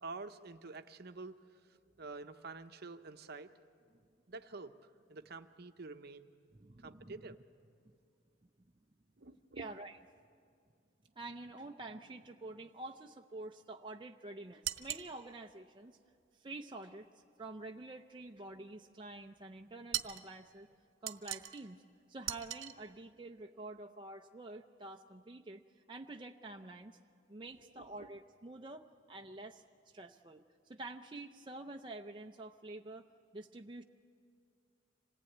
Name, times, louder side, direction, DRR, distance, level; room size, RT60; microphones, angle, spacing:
voice 1, 0.0-3.5 4.3-4.7 5.1-6.3 6.8-7.4 9.2-9.7 27.7-28.1, right 3 dB, 50° right, 8 dB, 0.8 m, -48 dB
voice 2, 6.5-7.2 7.8-8.0 9.6-10.0 11.2-16.0 16.4-20.7 21.0-21.8 22.1-25.6 25.9-27.0 27.3-29.6 29.9-33.1 33.3-33.8, right 2 dB, 25° right, 2 dB, 0.6 m, -48 dB
sound 1, 14.6-15.1 19.9-20.3 21.1-21.6 22.3-22.8, right 12 dB, 85° right, 0.9 m, -39 dB
26.5 x 18.0 x 9.1 m, 2.2 s
head